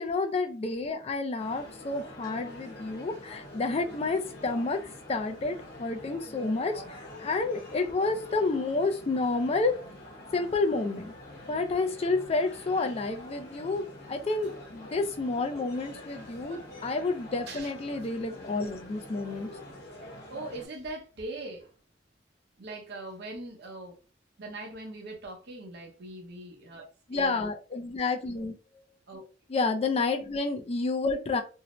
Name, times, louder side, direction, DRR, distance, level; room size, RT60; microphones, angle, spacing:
voice 1, 0.0-4.8 5.1-9.7 10.3-11.1 11.5-19.5 27.1-28.5 29.5-31.4, left 3 dB, 35° left, 0.4 m, -30 dB
sound 1, 1.4-20.7, left 1 dB, 60° left, 1.0 m, -46 dB
voice 2, 20.3-21.7 22.6-24.0 24.4-26.8 27.1-27.4 29.1-29.2, right 2 dB, 60° right, 0.7 m, -41 dB
2.6 x 2.0 x 2.9 m
head